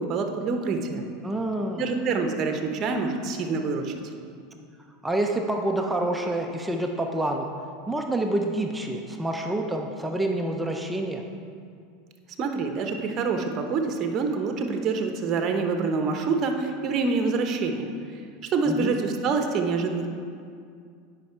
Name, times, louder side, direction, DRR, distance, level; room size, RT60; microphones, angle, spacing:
voice 1, 0.0-1.0 1.7-4.0 12.4-20.1, right 4 dB, 40° right, 5 dB, 0.9 m, -26 dB
voice 2, 1.2-1.8 5.0-7.5 7.9-11.2 18.7-18.9, right 1 dB, 10° right, 2 dB, 0.6 m, -27 dB
9.2 x 5.4 x 4.5 m, 2.3 s
supercardioid pair, 110°, 0 cm